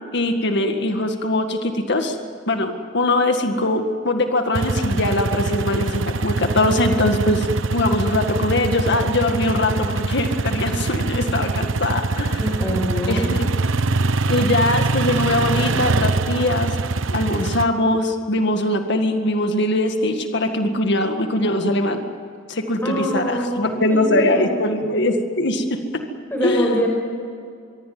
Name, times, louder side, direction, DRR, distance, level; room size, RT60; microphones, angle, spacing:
voice 1, 0.1-2.2 2.5-7.5 7.7-12.8 13.0-13.5 14.3-16.8 17.1-22.0 22.5-25.8 26.4-26.7, left 1 dB, 65° left, 5 dB, 1.9 m, -21 dB
sound 1, 4.5-17.6, right 3 dB, 80° right, 1.0 m, -23 dB
voice 2, 12.4-13.3 22.8-24.5 26.3-26.9, equal, 10° left, 0 dB, 5.7 m, -24 dB
24.5 x 23.5 x 9.5 m, 2.3 s
head